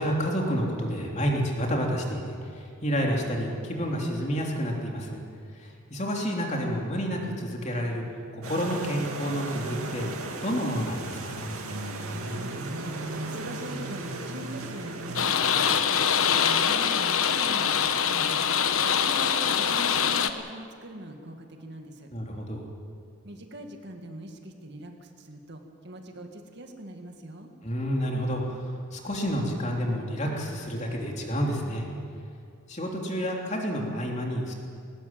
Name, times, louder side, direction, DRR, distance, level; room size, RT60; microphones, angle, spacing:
voice 1, 0.0-5.2 5.6-8.0 8.3-10.1 10.4-11.5 22.1-22.7 27.6-31.8 32.7-34.5, equal, 30° left, 0 dB, 3.3 m, -29 dB
sound 1, 8.4-15.3, right 2 dB, 80° right, 2.6 m, -35 dB
voice 2, 12.1-22.1 23.2-27.5, right 1 dB, 50° right, 4 dB, 2.1 m, -42 dB
sound 2, 15.2-20.3, left 7 dB, 75° left, 1.1 m, -24 dB
20.0 x 19.5 x 9.0 m, 2.4 s
head